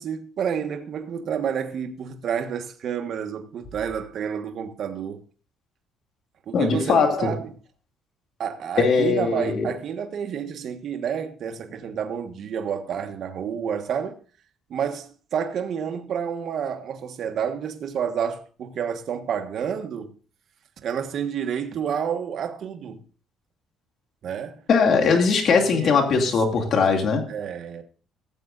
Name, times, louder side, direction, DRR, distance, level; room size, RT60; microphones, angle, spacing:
voice 1, 0.0-5.2 6.5-7.5 8.4-14.2 14.7-20.1 20.8-23.0 24.2-24.6 25.1-25.2 25.7-26.7 27.3-27.8, right 7 dB, 55° right, 1.3 m, -30 dB
voice 2, 6.5-7.3 8.8-9.7 24.7-27.3, left 5 dB, 50° left, 2.4 m, -20 dB
16.0 x 7.7 x 2.5 m
cardioid pair, 110°, 0 cm